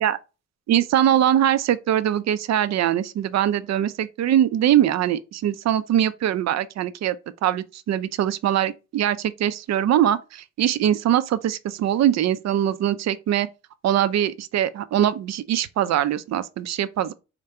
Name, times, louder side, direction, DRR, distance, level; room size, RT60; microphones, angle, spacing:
voice 1, 0.7-7.2 7.4-13.5 13.8-17.1, right 11 dB, 60° right, 0.5 m, -22 dB
5.1 x 2.2 x 4.3 m
cardioid pair, 90°, 30 cm